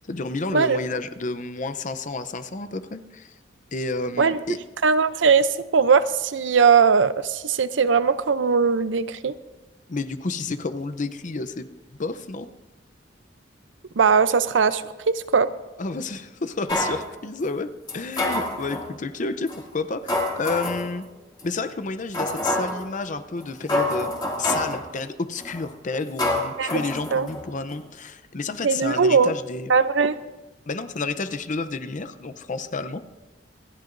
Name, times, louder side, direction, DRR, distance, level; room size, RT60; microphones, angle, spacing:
voice 1, 0.0-3.3 3.7-4.6 9.9-12.5 15.8-21.0 21.4-24.1 24.4-29.7 30.7-33.0, left 3 dB, 45° left, 11 dB, 0.7 m, -30 dB
voice 2, 4.8-9.3 14.0-15.5 26.6-26.7 27.1-27.3 28.6-29.3 29.7-30.2, right 5 dB, 85° right, 13 dB, 0.6 m, -19 dB
sound 1, 16.7-17.0 17.9-18.9 19.5-19.6 20.1-20.9 21.4-21.5 22.1-22.8 23.4-23.5 23.7-24.8 25.4-25.7 26.2-27.4 27.7-27.8, left 1 dB, 25° left, 2.5 m, -26 dB
27.0 x 10.5 x 2.6 m, 1.1 s
head